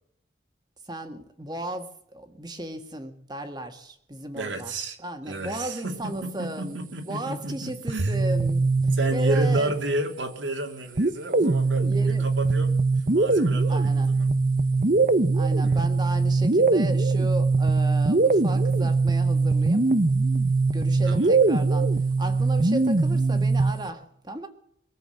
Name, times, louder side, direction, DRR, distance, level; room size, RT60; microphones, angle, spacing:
voice 1, 0.9-4.7 5.0-9.7 11.8-12.3 13.7-14.2 15.3-19.8 20.7-24.5, right 1 dB, 20° right, 6 dB, 1.8 m, -35 dB
voice 2, 4.3-5.0 5.3-8.2 8.9-12.8 13.0-14.3 15.6-15.9 21.0-21.3, right 1 dB, 85° right, 4 dB, 2.8 m, -32 dB
sound 1, 7.9-10.0 11.0-23.9, right 3 dB, 45° right, 0.8 m, -22 dB
22.5 x 7.8 x 7.7 m, 0.72 s
head